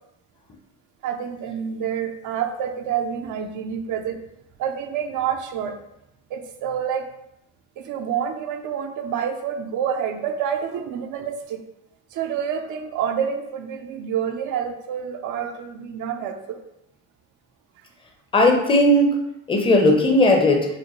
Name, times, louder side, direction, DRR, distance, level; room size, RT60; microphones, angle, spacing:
voice 1, 1.0-4.2 4.6-5.7 6.3-7.0 7.9-11.6 12.1-16.6, right 8 dB, 85° right, 4 dB, 0.5 m, -28 dB
voice 2, 18.3-19.2 19.5-20.7, left 1 dB, 15° left, 2 dB, 0.6 m, -16 dB
4.9 x 2.1 x 3.0 m, 0.82 s
cardioid pair, 90°, 30 cm